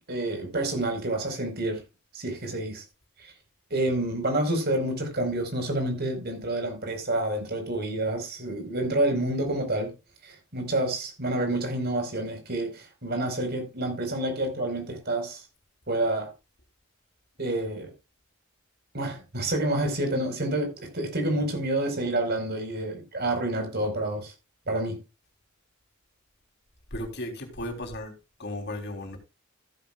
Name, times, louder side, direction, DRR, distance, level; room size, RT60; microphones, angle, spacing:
voice 1, 0.1-1.8 2.1-2.8 3.7-9.9 10.2-15.4 15.9-16.3 17.4-17.9 18.9-24.3 24.7-25.0, right 1 dB, 50° right, 4.7 m, -28 dB
voice 2, 26.9-28.1 28.4-29.2, left 1 dB, 55° left, 3.6 m, -35 dB
15.0 x 10.5 x 2.4 m
head